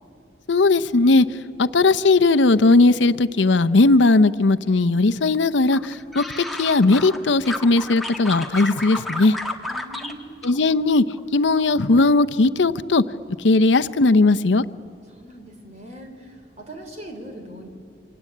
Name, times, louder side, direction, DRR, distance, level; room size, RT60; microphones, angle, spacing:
voice 1, 0.5-1.3 1.6-9.4 10.4-11.0 11.3-13.0 13.4-14.6, left 3 dB, 80° left, 13 dB, 0.7 m, -18 dB
sound 1, 5.7-7.2 7.4-10.1 10.4-11.2 11.5-11.9, left 1 dB, ahead, 1.4 m, -32 dB
voice 2, 9.7-10.4 15.1-17.7, right 1 dB, 35° right, 4 dB, 3.6 m, -40 dB
28.0 x 25.0 x 8.5 m, 2.5 s
head